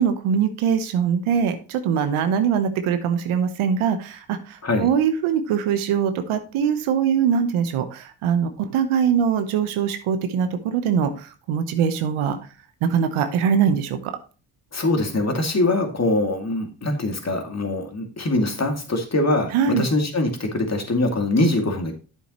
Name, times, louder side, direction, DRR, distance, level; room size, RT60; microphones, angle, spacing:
voice 1, 0.0-12.4 12.8-14.0 19.5-19.9, right 7 dB, 85° right, 9 dB, 1.0 m, -22 dB
voice 2, 4.6-4.9 14.7-21.9, left 2 dB, 30° left, 4 dB, 2.4 m, -23 dB
9.1 x 6.9 x 3.0 m, 0.35 s
supercardioid pair, 55°, 49 cm